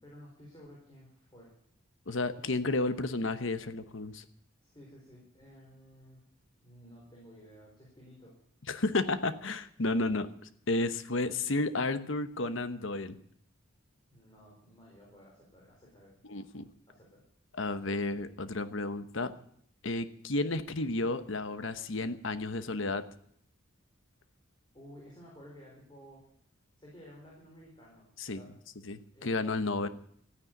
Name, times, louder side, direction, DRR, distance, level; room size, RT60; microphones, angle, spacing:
voice 1, 0.0-1.5 4.6-6.2 6.6-8.3 14.1-16.1 16.9-17.2 24.7-26.2 26.8-28.5 29.1-29.9, equal, 20° left, -3 dB, 4.6 m, -54 dB
voice 2, 2.1-4.2 8.7-10.3 10.7-13.2 16.2-16.7 17.5-19.3 19.8-23.0 28.2-28.4 28.8-29.9, left 2 dB, 65° left, 11 dB, 1.1 m, -32 dB
14.0 x 9.9 x 9.3 m, 0.66 s
head